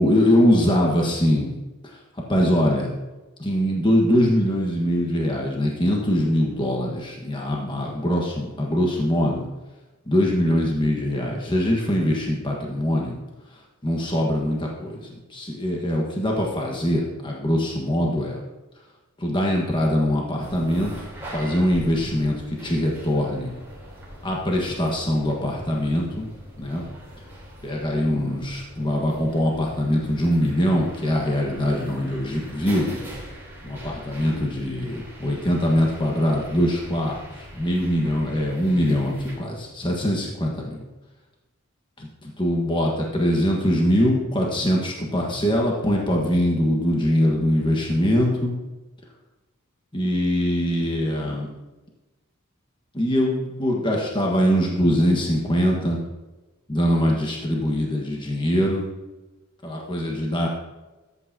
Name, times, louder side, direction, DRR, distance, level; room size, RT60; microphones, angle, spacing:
voice 1, 0.0-1.5 2.3-2.9 3.4-9.4 10.1-13.1 13.8-18.4 19.2-21.1 21.3-23.5 24.2-26.3 26.6-26.8 27.6-33.0 33.6-40.8 42.0-42.1 42.4-48.5 49.9-51.5 52.9-56.0 56.7-58.9 59.6-60.5, equal, 25° left, -1 dB, 1.4 m, -22 dB
sound 1, 20.4-39.4, equal, 10° right, 3.4 m, -42 dB
13.0 x 8.4 x 2.8 m, 1.1 s
head